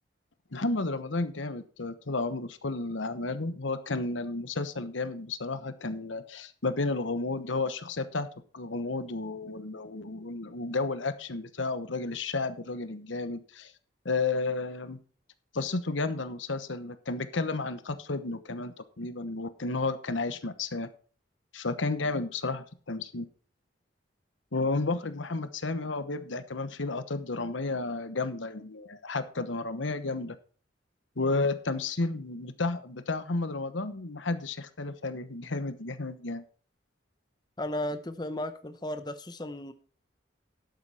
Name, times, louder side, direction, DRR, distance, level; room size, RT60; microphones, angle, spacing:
voice 1, 0.5-8.3 8.5-13.7 14.0-15.0 15.5-20.9 21.5-23.3 24.5-30.4 31.2-36.4, left 3 dB, 90° left, 11 dB, 1.1 m, -32 dB
voice 2, 37.6-39.7, left 1 dB, 20° left, 9 dB, 0.7 m, -35 dB
12.0 x 8.2 x 4.3 m, 0.41 s
head